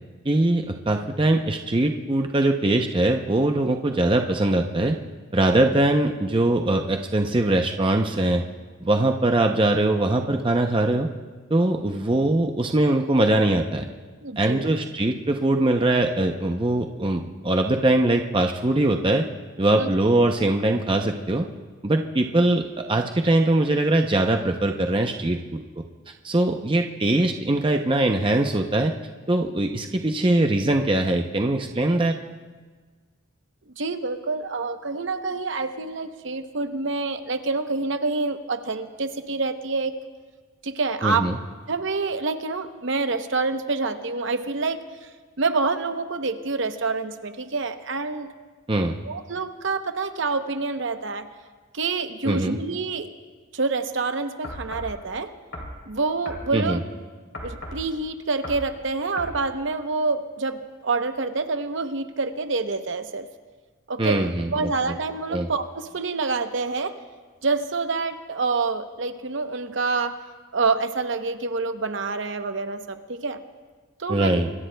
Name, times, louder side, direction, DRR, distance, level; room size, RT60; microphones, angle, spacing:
voice 1, 0.2-5.0 5.3-8.4 8.8-11.1 11.5-13.9 14.4-19.3 19.6-21.5 21.8-25.8 26.2-28.9 29.3-32.2 41.0-41.4 48.7-49.0 52.2-52.6 56.5-56.8 64.0-65.0 65.3-65.5 74.1-74.5, right 2 dB, 25° right, 4 dB, 0.6 m, -22 dB
voice 2, 14.2-14.7 19.8-19.9 33.8-39.9 40.6-41.3 41.7-45.1 45.4-48.3 49.0-51.3 51.7-53.1 53.5-55.3 55.9-56.8 57.4-63.3 63.9-64.2 64.5-66.9 67.4-70.1 70.5-73.4 74.0-74.4, right 3 dB, 60° right, 8 dB, 0.8 m, -27 dB
sound 1, 54.4-54.9 55.5-55.8 56.2-56.5 57.3-57.9 58.4-58.7 59.2-59.4, left 1 dB, 55° left, 3.0 m, -35 dB
26.0 x 21.5 x 2.2 m, 1.4 s
head